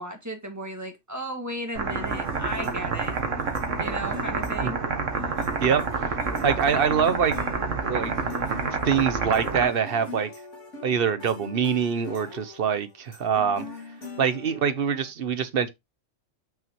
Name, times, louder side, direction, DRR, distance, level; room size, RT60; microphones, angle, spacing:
voice 1, 0.0-3.2 3.8-4.8, right 1 dB, 15° right, 1.9 m, -35 dB
sound 1, 1.7-9.6, right 5 dB, 85° right, 1.7 m, -28 dB
sound 2, 1.9-15.1, left 3 dB, 80° left, 2.5 m, -42 dB
voice 2, 6.4-7.3 7.8-8.1 8.8-10.3 10.8-13.6 14.2-15.7, right 7 dB, 50° right, 1.1 m, -24 dB
7.2 x 6.1 x 3.0 m
omnidirectional pair, 1.3 m